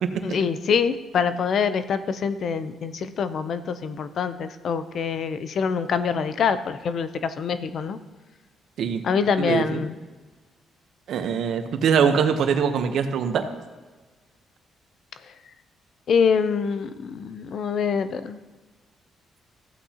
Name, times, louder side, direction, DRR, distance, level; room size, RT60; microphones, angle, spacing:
voice 1, 0.2-8.0 9.0-10.0 16.1-18.4, left 6 dB, 60° left, 12 dB, 0.6 m, -25 dB
voice 2, 9.4-9.9 11.1-13.5, right 7 dB, 70° right, 7 dB, 0.9 m, -23 dB
15.0 x 8.2 x 2.9 m, 1.3 s
cardioid pair, 90°, 0 cm